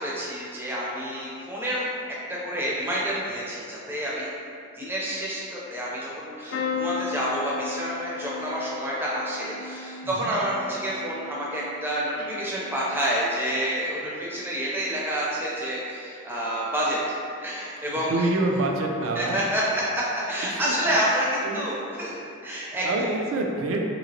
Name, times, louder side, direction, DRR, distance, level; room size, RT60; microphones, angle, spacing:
voice 1, 0.0-1.9 2.3-4.3 4.7-17.0 17.4-18.3 19.2-23.1, right 1 dB, 10° right, -6 dB, 0.4 m, -28 dB
sound 1, 6.5-14.3 14.8-15.3 16.6-16.8 17.0-17.1, left 5 dB, 60° left, 0.3 m, -37 dB
voice 2, 18.0-19.4 20.5-21.0 21.4-21.6 22.8-23.8, right 2 dB, 75° right, 1 dB, 0.4 m, -27 dB
2.9 x 2.8 x 2.6 m, 2.5 s
head